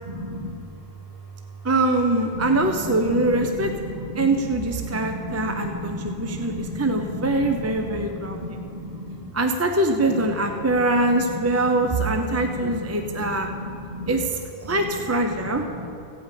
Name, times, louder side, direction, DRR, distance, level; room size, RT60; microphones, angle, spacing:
voice 1, 0.1-0.5 2.4-2.5 2.8-3.2 3.6-4.3 4.8-9.2 12.3-12.4 12.7-14.1 15.7-15.9, equal, 45° right, -4 dB, 2.2 m, -33 dB
voice 2, 1.6-3.7 4.2-8.4 9.3-13.5 14.1-15.9, right 2 dB, 20° right, 4 dB, 0.5 m, -23 dB
15.0 x 5.3 x 8.2 m, 2.6 s
omnidirectional pair, 1.1 m